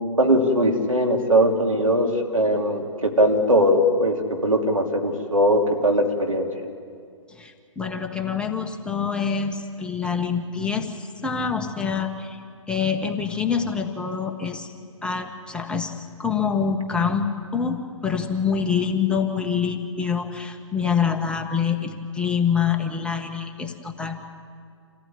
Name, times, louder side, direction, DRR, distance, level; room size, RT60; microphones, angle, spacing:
voice 1, 0.2-6.5, equal, 90° right, 3 dB, 3.3 m, -20 dB
voice 2, 7.3-12.4 12.7-14.7 15.0-24.3, left 6 dB, 5° left, 3 dB, 1.3 m, -26 dB
27.5 x 15.5 x 9.7 m, 2.2 s
figure-of-eight pair, 130°, 17 cm